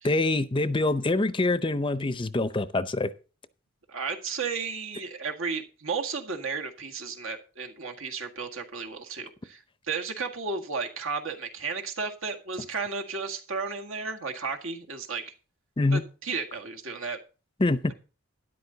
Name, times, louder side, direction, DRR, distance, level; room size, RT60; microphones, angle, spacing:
voice 1, 0.0-3.1 15.8-16.0 17.6-17.9, left 2 dB, 25° left, 0.6 m, -25 dB
voice 2, 3.9-15.3 15.9-17.2, right 5 dB, 75° right, 1.8 m, -33 dB
12.5 x 10.5 x 4.0 m
head